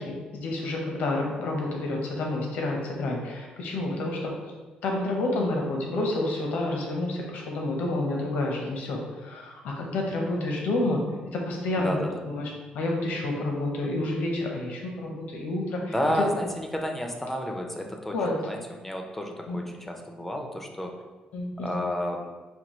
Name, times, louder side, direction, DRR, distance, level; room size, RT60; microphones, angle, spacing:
voice 1, 0.0-4.3 4.8-11.0 11.3-15.9 18.1-18.3 19.5-19.6 21.3-21.8, left 2 dB, 75° left, 0 dB, 0.8 m, -29 dB
voice 2, 11.8-12.2 15.9-20.9 21.6-22.3, equal, 10° left, 2 dB, 0.4 m, -31 dB
5.3 x 2.3 x 3.0 m, 1.3 s
cardioid pair, 140°, 3 cm